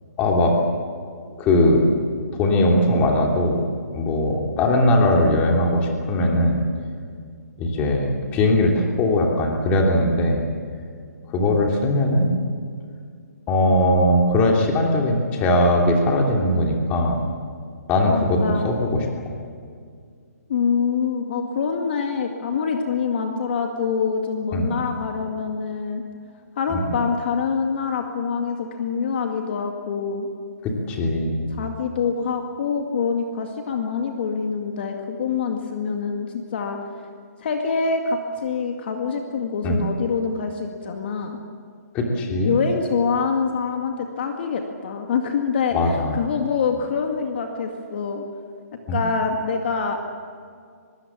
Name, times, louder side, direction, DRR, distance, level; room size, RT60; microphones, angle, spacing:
voice 1, 0.2-0.5 1.4-1.8 2.4-3.7 3.9-6.6 7.6-10.4 11.3-12.3 13.5-17.3 17.9-18.4 18.6-19.3 24.5-24.7 26.7-26.8 30.6-31.5 39.6-39.8 41.9-42.6 45.7-46.2 48.9-49.0, left 1 dB, 15° left, 0 dB, 2.9 m, -20 dB
voice 2, 18.1-18.7 20.5-26.0 26.6-30.3 31.5-36.8 37.4-41.4 42.4-48.2 48.9-50.0, left 5 dB, 40° left, 3 dB, 2.1 m, -25 dB
23.5 x 22.5 x 7.4 m, 2.2 s
hypercardioid pair, 165°, 9 cm